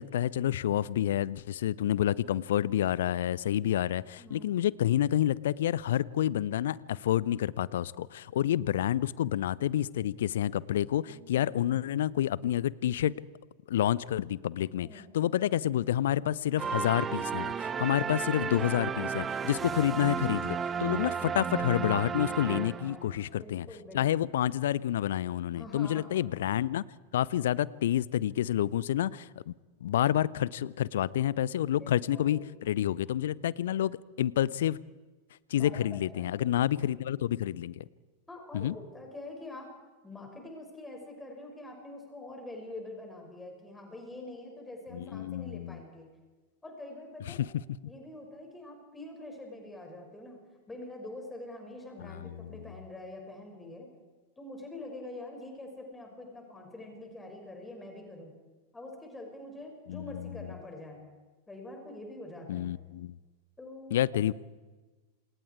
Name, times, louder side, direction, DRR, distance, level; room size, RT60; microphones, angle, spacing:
voice 1, 0.0-13.1 13.7-23.7 23.9-26.8 27.1-29.5 29.8-34.8 35.5-37.8 38.5-38.8 44.9-45.8 47.3-47.5 52.0-52.5 59.9-60.5 62.5-63.2 63.9-64.3, left 11 dB, 60° left, 22 dB, 0.7 m, -29 dB
voice 2, 4.2-4.5 11.0-11.8 14.8-15.4 18.1-18.3 22.6-24.0 25.5-26.3 31.7-32.4 35.5-36.9 38.3-39.7 40.0-46.1 46.6-47.4 47.9-50.4 50.7-53.9 54.4-58.3 58.7-61.0 61.5-62.7 63.6-64.0, left 2 dB, 10° left, 2 dB, 6.4 m, -45 dB
sound 1, 16.6-23.2, right 6 dB, 20° right, 1.1 m, -33 dB
28.5 x 27.0 x 4.8 m, 1.3 s
figure-of-eight pair, 90°, 0 cm